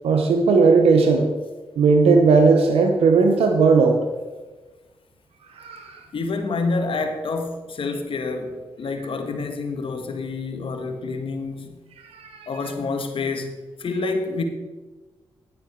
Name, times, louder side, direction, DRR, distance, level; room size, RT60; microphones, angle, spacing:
voice 1, 0.0-1.3 1.8-4.0 5.5-6.0 12.0-12.5, right 4 dB, 85° right, 0.9 m, -17 dB
voice 2, 6.1-11.7 12.5-14.4, left 3 dB, 65° left, 1.4 m, -28 dB
12.0 x 7.9 x 4.7 m
cardioid pair, 55°, 10 cm